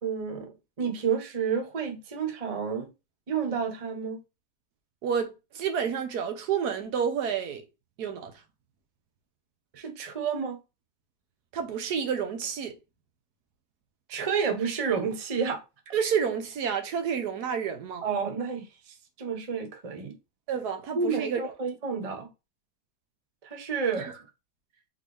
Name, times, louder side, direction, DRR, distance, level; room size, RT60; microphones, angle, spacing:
voice 1, 0.0-2.9 3.3-4.2 9.7-10.6 14.1-15.6 18.0-20.1 20.9-22.3 23.4-24.1, right 6 dB, 35° right, 0.6 m, -30 dB
voice 2, 5.0-7.6 8.0-8.3 11.5-12.8 15.9-18.1 20.5-21.4 24.0-24.1, right 7 dB, 75° right, 1.3 m, -29 dB
3.8 x 3.8 x 3.2 m
omnidirectional pair, 1.7 m